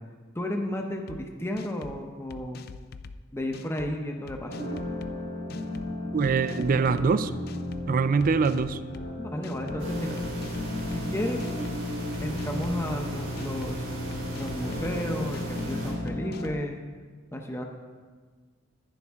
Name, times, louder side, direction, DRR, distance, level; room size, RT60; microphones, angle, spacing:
voice 1, 0.3-2.7 3.3-4.6 8.5-8.6 9.2-10.2 10.9-11.5 12.2-13.8 14.4-16.8 17.3-17.6, left 1 dB, 15° left, 2 dB, 0.7 m, -33 dB
sound 1, 1.1-1.2 1.6-2.0 2.3-3.2 3.5-3.9 4.3-5.1 5.5-5.9 6.2-7.1 7.5-7.8 8.2-9.1 9.4-9.8 10.2-11.0 11.4-11.8 12.1-13.0 13.4-13.7 14.1-15.0 15.3-15.7 16.1-16.6, left 5 dB, 50° left, 0.4 m, -44 dB
sound 2, 4.5-16.5, left 1 dB, 75° left, 2.1 m, -35 dB
voice 2, 6.1-7.3 7.9-8.8, right 5 dB, 45° right, 13 dB, 0.3 m, -23 dB
sound 3, 9.8-15.9, right 1 dB, 75° right, 3.3 m, -35 dB
10.5 x 9.7 x 3.5 m, 1.5 s
head